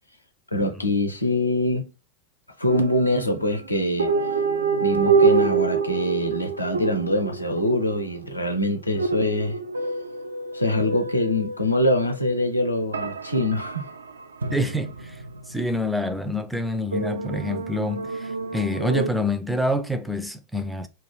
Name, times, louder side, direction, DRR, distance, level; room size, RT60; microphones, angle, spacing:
voice 1, 0.5-1.9 2.6-4.1 4.8-9.6 10.5-13.9, left 1 dB, 85° left, 0.6 m, -24 dB
sound 1, 2.7-3.4 4.0-8.5 9.0-12.3 12.9-15.5 16.9-19.1, right 5 dB, 75° right, 0.3 m, -26 dB
voice 2, 14.5-15.2 15.5-20.9, left 1 dB, ahead, 0.4 m, -27 dB
2.3 x 2.3 x 3.1 m
figure-of-eight pair, 90°, 0 cm